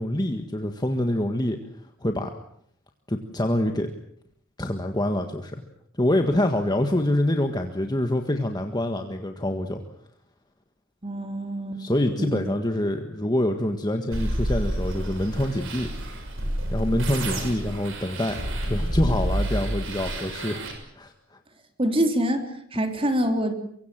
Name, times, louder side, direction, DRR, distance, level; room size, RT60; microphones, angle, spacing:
voice 1, 0.0-1.6 2.0-2.3 3.1-3.9 4.6-5.6 6.0-9.8 11.8-15.9 16.7-18.4 18.6-20.6 20.9-21.4, left 1 dB, 20° left, 5 dB, 1.6 m, -25 dB
voice 2, 11.0-11.8 12.2-12.4 21.8-23.5, equal, 25° right, 6 dB, 3.3 m, -25 dB
sound 1, 14.1-20.7, right 1 dB, 65° right, 6.6 m, -29 dB
24.0 x 24.0 x 7.5 m, 0.67 s
head